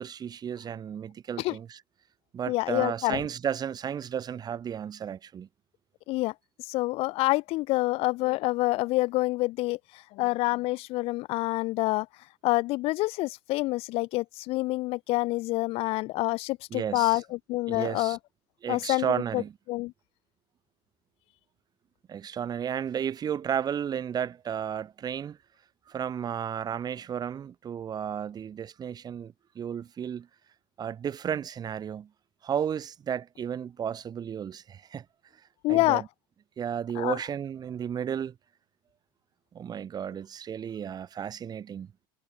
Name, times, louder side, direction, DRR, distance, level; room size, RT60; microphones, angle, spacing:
voice 1, 0.0-1.8 2.3-5.5 16.7-17.2 17.7-18.2 18.6-19.5 22.1-25.4 25.9-30.3 30.8-32.1 32.4-35.0 35.7-36.1 36.6-38.3 39.5-41.9, right 8 dB, 35° right, 4.7 m, -33 dB
voice 2, 2.5-3.2 6.1-6.3 6.7-12.1 12.4-18.2 18.7-19.4 19.7-19.9 35.6-36.0 37.0-37.2, left 20 dB, 55° left, 1.9 m, -27 dB
hypercardioid pair, 85°, 12 cm